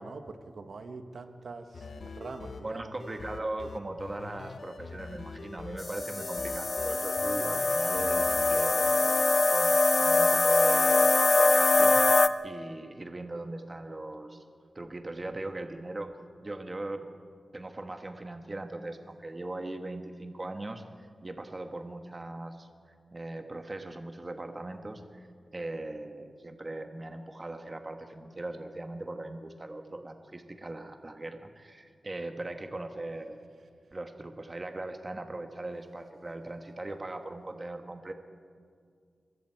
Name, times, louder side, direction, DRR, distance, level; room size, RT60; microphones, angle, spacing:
voice 1, 0.0-2.9, right 3 dB, 70° right, 7 dB, 1.5 m, -43 dB
sound 1, 1.7-8.7, left 4 dB, 65° left, 0.9 m, -45 dB
voice 2, 2.6-12.0 12.4-14.4 14.7-16.1 16.4-17.1 17.5-22.7 23.1-33.4 33.9-38.1, right 2 dB, 25° right, 6 dB, 1.3 m, -39 dB
sound 2, 5.8-12.3, left 3 dB, 35° left, 0.6 m, -23 dB
26.0 x 22.0 x 4.6 m, 2.1 s
wide cardioid pair, 120°, 0 cm